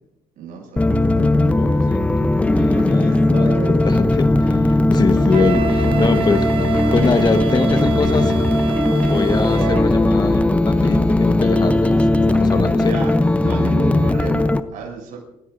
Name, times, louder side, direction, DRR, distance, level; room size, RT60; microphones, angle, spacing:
voice 1, 0.4-3.8 4.7-4.8 5.5-6.2 12.8-15.2, right 5 dB, 75° right, 0 dB, 6.9 m, -33 dB
sound 1, 0.8-14.6, left 2 dB, 10° left, 0.7 m, -17 dB
voice 2, 1.6-2.0 2.5-3.6 3.8-8.4 9.1-12.9, left 4 dB, 30° left, 8 dB, 1.2 m, -23 dB
Wind instrument woodwind instrument, 5.3-9.8, right 13 dB, 40° right, 0.8 m, -28 dB
29.0 x 16.5 x 2.6 m, 0.93 s
cardioid pair, 105°, 14 cm